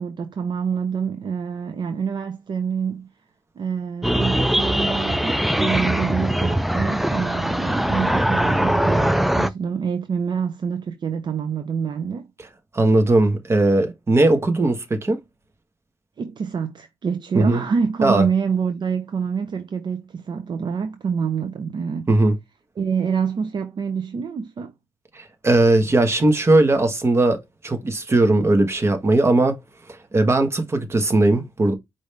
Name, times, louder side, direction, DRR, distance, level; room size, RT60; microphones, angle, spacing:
voice 1, 0.0-3.1 3.6-12.3 16.2-22.1 22.8-24.7, right 6 dB, 50° right, 0.5 m, -26 dB
sound 1, 4.0-9.5, equal, ahead, 0.3 m, -21 dB
voice 2, 12.7-15.2 17.3-17.6 18.0-18.2 22.1-22.3 25.1-29.6 30.1-31.7, right 2 dB, 25° right, 1.2 m, -18 dB
5.0 x 2.6 x 3.2 m
wide cardioid pair, 140°, 10 cm